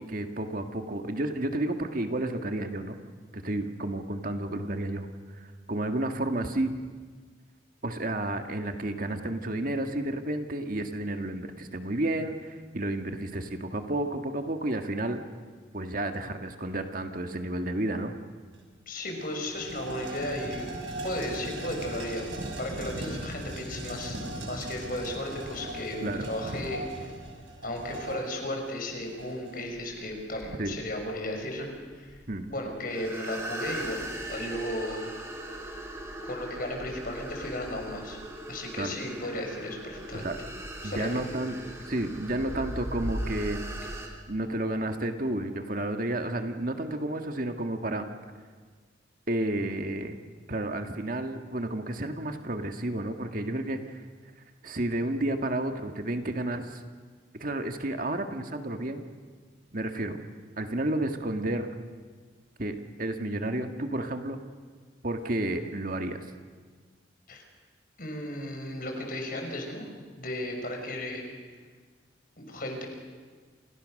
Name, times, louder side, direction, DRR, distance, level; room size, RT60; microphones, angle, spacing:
voice 1, 0.0-3.0 3.3-5.1 5.3-6.7 7.8-15.2 15.7-18.1 26.0-26.3 30.6-30.8 32.3-32.5 38.8-38.9 40.1-40.4 40.8-41.6 41.9-43.6 44.3-48.1 49.3-50.2 50.5-54.1 54.6-56.8 57.4-59.0 59.7-60.2 60.6-61.7 62.6-64.4 65.0-66.3, right 1 dB, 45° right, 6 dB, 1.9 m, -31 dB
sound 1, 18.5-18.6 19.0-29.7, right 1 dB, 80° right, 6.6 m, -39 dB
voice 2, 18.9-20.7 21.0-27.1 27.6-32.2 32.5-34.0 34.3-35.0 36.2-38.2 38.5-40.3 40.8-41.1 43.8-43.9 67.3-67.4 68.0-69.8 70.2-71.2 72.4-72.9, left 1 dB, 50° left, 3 dB, 6.0 m, -35 dB
sound 2, 29.7-44.1, right 1 dB, 15° right, 3.8 m, -39 dB
29.0 x 28.5 x 6.6 m, 1.5 s
head